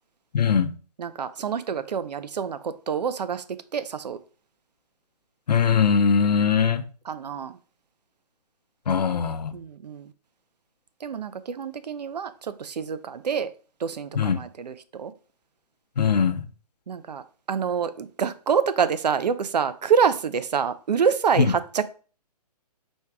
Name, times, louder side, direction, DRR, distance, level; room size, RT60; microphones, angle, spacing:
voice 1, 0.3-0.7 5.5-6.8 8.9-9.5 14.2-14.4 16.0-16.4, left 7 dB, 85° left, 0.6 m, -21 dB
voice 2, 1.0-3.4 3.7-4.2 7.0-7.6 9.5-10.1 11.0-13.5 13.8-15.1 16.9-21.9, right 7 dB, 85° right, 0.5 m, -26 dB
4.4 x 2.3 x 4.7 m
hypercardioid pair, 160°, 21 cm